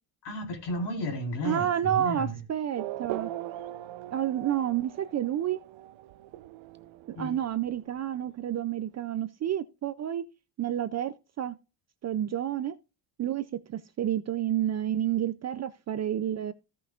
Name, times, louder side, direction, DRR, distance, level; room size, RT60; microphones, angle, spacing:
voice 1, 0.2-2.4 7.2-7.3, equal, 55° left, 4.1 m, -33 dB
voice 2, 1.4-3.3 4.1-5.6 7.1-10.2 10.6-11.5 12.0-12.7 13.2-16.5, right 11 dB, 35° right, 0.4 m, -30 dB
Race car auto racing / Accelerating revving vroom, 2.8-8.8, right 14 dB, 70° right, 0.7 m, -41 dB
16.0 x 5.7 x 2.4 m
cardioid pair, 155°, 48 cm